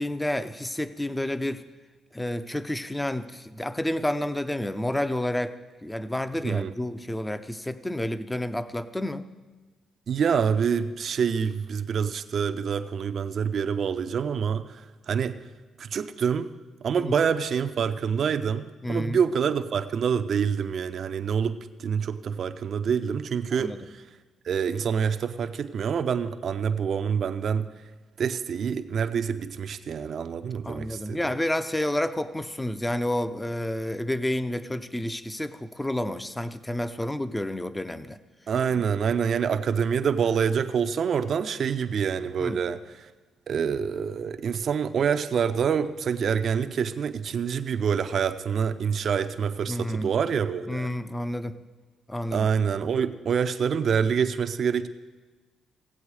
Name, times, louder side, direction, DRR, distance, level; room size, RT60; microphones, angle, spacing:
voice 1, 0.0-1.6 2.1-5.5 5.8-9.3 17.0-17.2 18.8-19.2 23.5-23.9 30.6-38.2 38.7-38.8 42.4-42.6 49.7-50.1 50.7-51.6 52.1-52.5, left 1 dB, 10° left, 12 dB, 0.6 m, -30 dB
voice 2, 10.1-15.4 15.8-16.5 16.8-23.7 24.5-27.7 28.2-31.2 38.5-42.8 43.5-50.9 52.3-54.9, right 7 dB, 55° right, 9 dB, 0.6 m, -26 dB
16.5 x 7.9 x 4.8 m, 1.3 s
cardioid pair, 90°, 0 cm